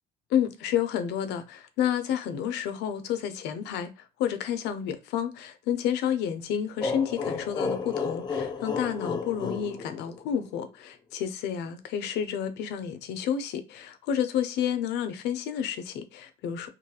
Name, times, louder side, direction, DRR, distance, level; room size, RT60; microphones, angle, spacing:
voice 1, 0.3-16.7, left 9 dB, 85° left, 0.5 m, -30 dB
sound 1, 6.8-10.5, left 4 dB, 25° left, 0.4 m, -32 dB
2.6 x 2.3 x 2.7 m
cardioid pair, 110°, 17 cm